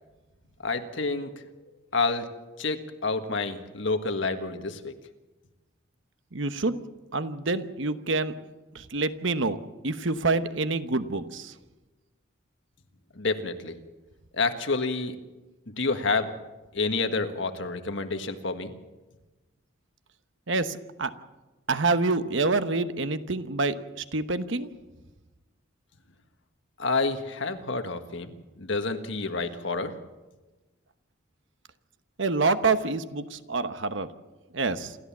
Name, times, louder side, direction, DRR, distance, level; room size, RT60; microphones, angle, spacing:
voice 1, 0.6-1.4 1.9-4.9 13.1-13.8 14.3-15.2 15.8-16.3 16.7-18.7 26.8-29.9, left 3 dB, 65° left, 7 dB, 1.6 m, -29 dB
voice 2, 6.3-6.8 7.1-8.3 8.7-9.6 9.8-11.5 20.5-21.1 21.7-24.7 32.2-34.1 34.5-35.0, right 3 dB, 65° right, 11 dB, 1.0 m, -27 dB
27.5 x 13.5 x 7.3 m, 1.1 s
head